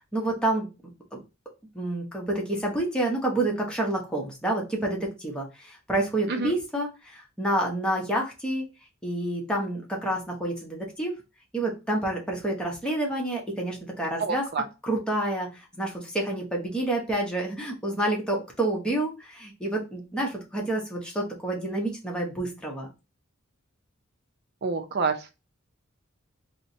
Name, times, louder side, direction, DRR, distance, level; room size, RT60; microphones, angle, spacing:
voice 1, 0.1-0.7 1.1-1.2 1.7-8.6 9.0-11.1 11.5-14.5 14.8-22.9, right 1 dB, 5° left, -2 dB, 0.9 m, -28 dB
voice 2, 14.2-14.6 24.6-25.1, right 4 dB, 50° right, 6 dB, 0.6 m, -27 dB
4.3 x 2.1 x 2.7 m, 0.28 s
head